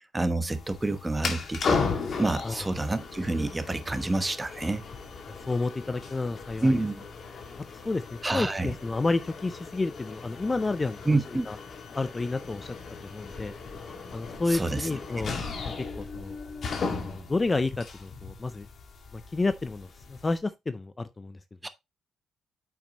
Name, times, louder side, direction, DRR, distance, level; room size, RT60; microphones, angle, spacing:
voice 1, 0.1-1.8 2.2-4.8 6.6-7.0 8.2-8.7 11.1-11.5 14.5-14.9 15.3-15.4 21.6-21.7, right 2 dB, 15° right, 1.1 m, -28 dB
sound 1, 0.5-20.4, left 4 dB, 50° left, 1.9 m, -37 dB
voice 2, 5.3-6.8 7.8-11.2 11.5-11.6 11.9-12.8 13.1-13.5 14.1-15.3 16.0-16.4 16.9-18.7 19.1-21.4, left 3 dB, 25° left, 0.5 m, -30 dB
8.5 x 6.0 x 2.9 m
cardioid pair, 90°, 0 cm